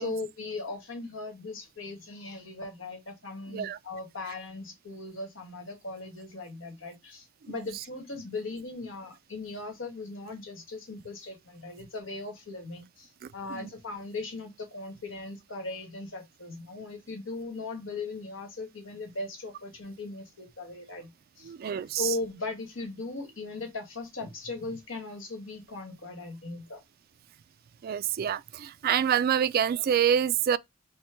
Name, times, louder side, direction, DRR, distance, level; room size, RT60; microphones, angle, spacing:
voice 1, 0.0-21.1 21.4-21.5 22.0-26.8, left 3 dB, 85° left, 1.7 m, -38 dB
voice 2, 21.4-22.1 27.8-30.6, right 9 dB, 50° right, 0.3 m, -27 dB
4.3 x 2.2 x 4.4 m
head